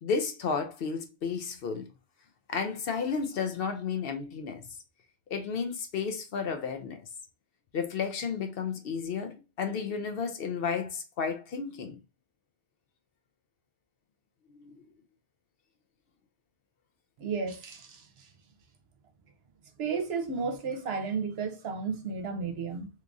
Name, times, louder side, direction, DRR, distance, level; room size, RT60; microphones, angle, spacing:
voice 1, 0.0-1.8 2.5-4.6 5.3-7.0 7.7-12.0 14.6-14.8, left 5 dB, 65° left, 0.7 m, -32 dB
voice 2, 17.2-18.3 19.8-22.9, right 5 dB, 65° right, 0.9 m, -33 dB
3.5 x 2.9 x 2.5 m
omnidirectional pair, 1.2 m